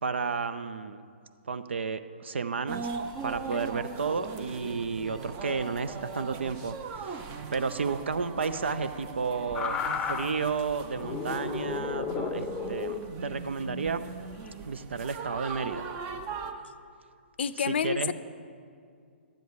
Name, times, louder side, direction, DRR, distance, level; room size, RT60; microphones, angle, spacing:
voice 1, 0.0-1.0 1.5-2.9 3.2-7.2 7.5-9.8 10.0-13.0 13.2-14.0 14.6-15.9 17.7-18.1, right 5 dB, 75° right, 13 dB, 0.5 m, -32 dB
sound 1, 2.7-16.5, right 5 dB, 30° right, 0.7 m, -40 dB
Alarm, 3.0-7.7, right 3 dB, 5° right, 1.4 m, -55 dB
voice 2, 3.5-3.8 17.4-18.1, left 7 dB, 65° left, 15 dB, 0.5 m, -30 dB
sound 2, 9.5-10.4 10.9-13.1 14.3-14.5, left 6 dB, 15° left, 0.5 m, -33 dB
11.5 x 10.5 x 4.7 m, 2.2 s
hypercardioid pair, 130°, 6 cm